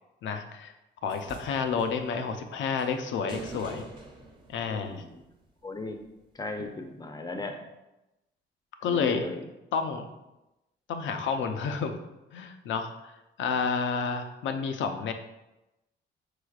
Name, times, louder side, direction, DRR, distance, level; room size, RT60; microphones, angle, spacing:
voice 1, 0.2-0.7 1.0-3.9 4.5-5.0 6.6-6.7 8.8-9.2 9.7-10.1 10.9-12.0 12.3-15.1, left 5 dB, 70° left, 7 dB, 0.5 m, -30 dB
sound 1, 1.1-5.5 6.6-6.7, right 3 dB, 25° right, 0.9 m, -46 dB
voice 2, 4.7-5.2 5.6-6.0 6.3-7.6 8.8-9.4, left 2 dB, 20° left, 5 dB, 0.6 m, -37 dB
4.9 x 3.9 x 2.4 m, 0.96 s
cardioid pair, 90°, 20 cm